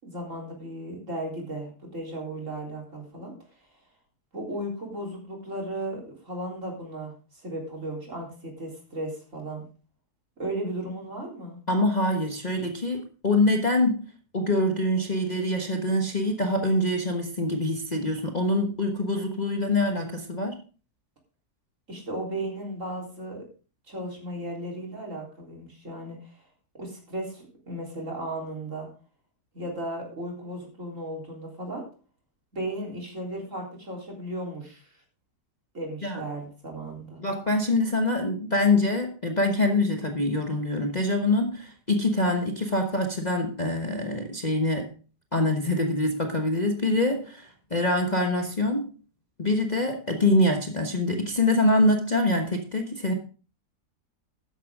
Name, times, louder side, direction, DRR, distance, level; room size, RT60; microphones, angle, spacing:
voice 1, 0.0-3.3 4.3-9.7 10.4-11.6 21.9-23.4 23.9-26.4 26.8-28.9 29.5-31.8 32.5-34.9 35.7-37.2, right 1 dB, 50° right, 0 dB, 4.1 m, -35 dB
voice 2, 11.7-14.0 14.3-20.6 36.0-36.2 37.2-44.9 45.3-48.9 49.4-53.1, left 1 dB, 30° left, 3 dB, 1.2 m, -25 dB
12.5 x 10.0 x 3.6 m, 0.37 s
omnidirectional pair, 1.7 m